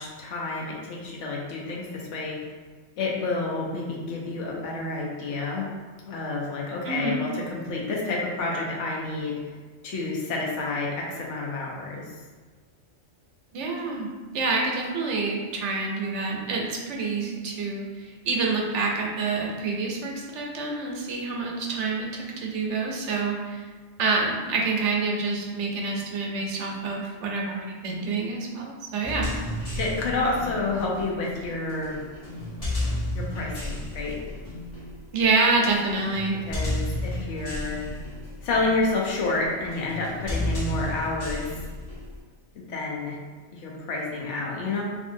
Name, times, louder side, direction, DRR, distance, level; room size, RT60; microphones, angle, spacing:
voice 1, 0.0-2.4 3.0-5.7 6.0-9.4 9.8-12.1 29.7-32.0 33.1-34.2 36.5-37.8 38.4-41.5 42.5-43.2 43.5-44.8, left 3 dB, 85° left, -3 dB, 1.0 m, -29 dB
voice 2, 6.8-7.2 13.5-23.6 24.0-29.3 35.1-36.4, right 3 dB, 80° right, -1 dB, 0.9 m, -27 dB
sound 1, 29.0-42.2, left 1 dB, 35° left, 0.9 m, -33 dB
2.6 x 2.6 x 2.5 m, 1.4 s
omnidirectional pair, 1.2 m